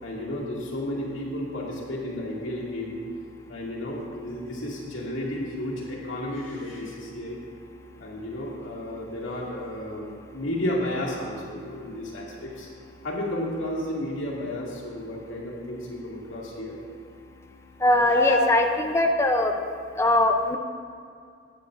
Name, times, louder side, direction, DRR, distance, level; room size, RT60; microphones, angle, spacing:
voice 1, 0.0-3.0 3.5-7.4 8.0-12.7 13.0-16.8 18.0-18.5, left 1 dB, 85° left, -5 dB, 2.2 m, -32 dB
voice 2, 17.8-19.5 20.0-20.6, left 1 dB, 15° left, 4 dB, 0.5 m, -21 dB
14.5 x 8.8 x 2.6 m, 2.2 s
head